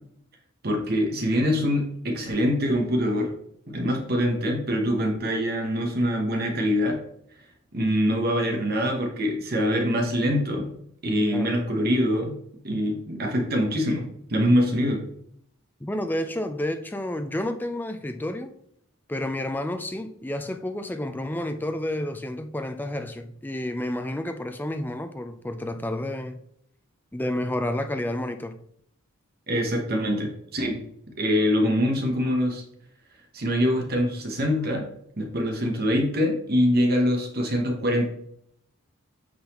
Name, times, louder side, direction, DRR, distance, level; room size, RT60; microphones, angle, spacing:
voice 1, 0.6-3.3 3.7-7.0 7.7-10.6 11.0-12.3 12.6-15.0 29.5-30.8 31.2-32.6 33.3-34.8 35.2-38.1, equal, 45° right, 1.1 m, -24 dB
voice 2, 11.3-11.6 15.8-18.5 19.1-26.4 27.1-28.6, left 1 dB, 10° left, 0.4 m, -30 dB
8.5 x 4.0 x 3.0 m
head